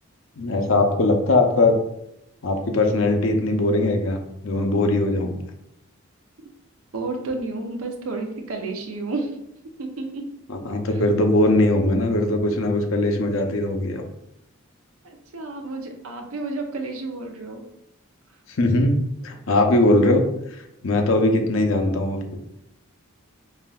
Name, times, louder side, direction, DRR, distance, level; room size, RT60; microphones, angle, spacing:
voice 1, 0.4-1.8 2.4-5.3 10.7-14.0 18.6-19.0 19.2-20.2 20.8-22.4, left 2 dB, 70° left, 4 dB, 0.6 m, -20 dB
voice 2, 6.9-9.4 9.8-10.2 10.9-11.0 11.4-11.5 15.0-17.6, right 3 dB, 80° right, 4 dB, 0.6 m, -31 dB
5.4 x 2.5 x 2.3 m, 0.82 s
head